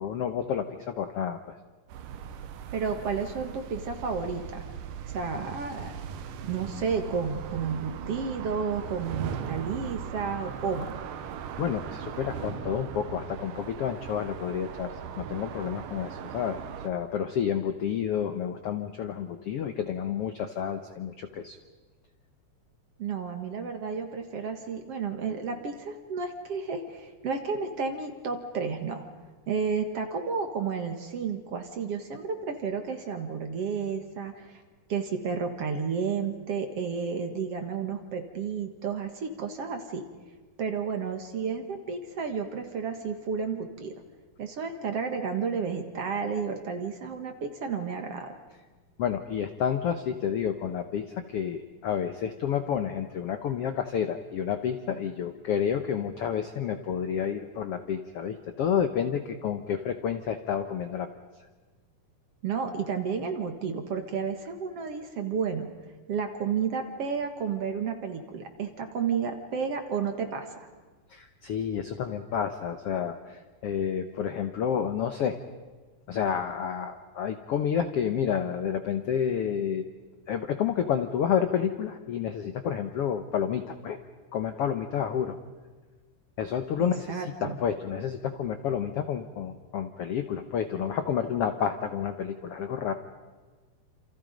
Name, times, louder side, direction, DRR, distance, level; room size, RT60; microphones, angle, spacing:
voice 1, 0.0-1.4 11.6-16.6 16.8-21.6 49.0-61.1 71.1-75.4 76.1-79.8 80.3-84.0 84.3-85.4 86.4-92.9, left 8 dB, 80° left, 8 dB, 1.3 m, -30 dB
Underground tunnel with vehicles driving by, 1.9-16.9, right 8 dB, 75° right, 2.5 m, -39 dB
voice 2, 2.7-4.6 5.1-6.0 6.4-10.9 23.0-29.0 29.5-34.6 34.9-40.0 40.6-43.9 44.4-48.4 62.4-65.7 66.1-70.7 86.8-87.6, right 5 dB, 50° right, 5 dB, 2.1 m, -32 dB
28.0 x 28.0 x 5.2 m, 1.3 s
omnidirectional pair, 4.1 m